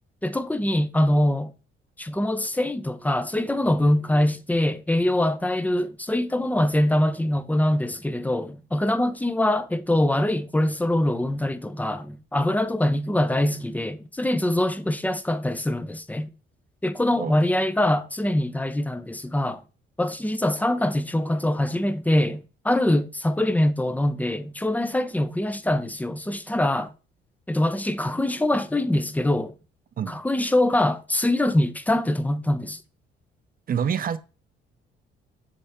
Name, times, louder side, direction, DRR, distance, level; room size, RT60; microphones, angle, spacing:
voice 1, 0.2-1.5 2.0-16.3 16.8-19.6 20.0-26.9 27.5-29.5 30.1-32.8, left 1 dB, 10° left, 0.6 m, -23 dB
voice 2, 33.7-34.2, right 7 dB, 45° right, 0.6 m, -26 dB
6.6 x 3.5 x 4.3 m
cardioid pair, 90°, 20 cm